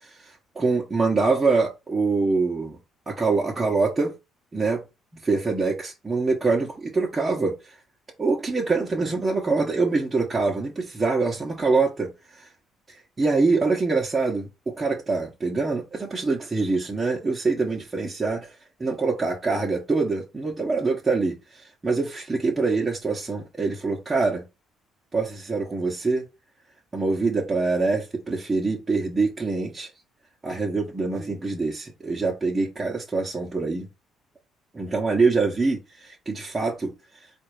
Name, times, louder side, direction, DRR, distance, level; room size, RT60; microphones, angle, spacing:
voice 1, 0.0-2.8 3.1-4.1 4.5-4.8 5.1-7.8 8.2-12.1 12.9-24.4 25.1-26.2 26.9-29.9 30.4-33.9 34.7-37.3, right 3 dB, 25° right, 1.1 m, -25 dB
4.1 x 2.6 x 4.8 m
cardioid pair, 85°, 0 cm